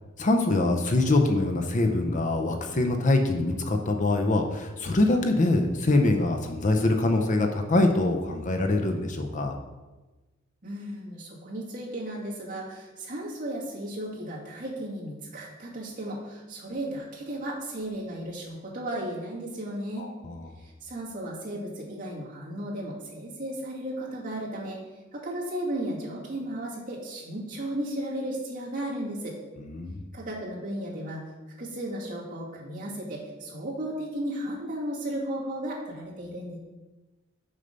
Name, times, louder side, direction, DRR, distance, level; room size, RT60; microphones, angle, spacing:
voice 1, 0.2-9.5 20.0-20.5 29.6-30.0, left 2 dB, 40° left, 4 dB, 0.6 m, -24 dB
voice 2, 10.6-20.1 20.6-24.8 25.1-29.4 30.1-31.2 31.6-36.6, right 1 dB, 40° right, -5 dB, 2.2 m, -35 dB
6.7 x 5.4 x 5.3 m, 1.2 s
head